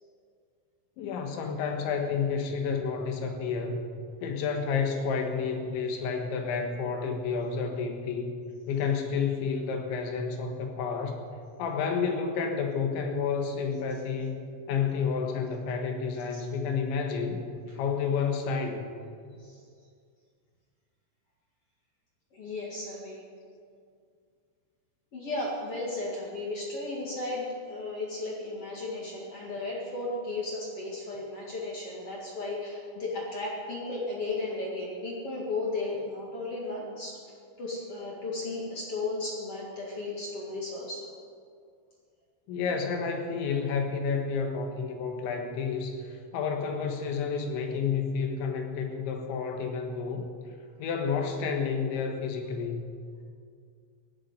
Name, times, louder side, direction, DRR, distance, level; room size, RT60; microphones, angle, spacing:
voice 1, 1.0-3.8 4.2-8.4 8.7-11.2 11.6-14.4 14.7-17.5 17.8-18.9 42.5-50.3 50.8-52.8, left 5 dB, 75° left, 4 dB, 3.8 m, -30 dB
voice 2, 22.3-23.2 25.1-37.2 37.6-41.1, left 2 dB, 45° left, -3 dB, 2.0 m, -35 dB
17.0 x 7.4 x 9.7 m, 2.2 s
omnidirectional pair, 5.4 m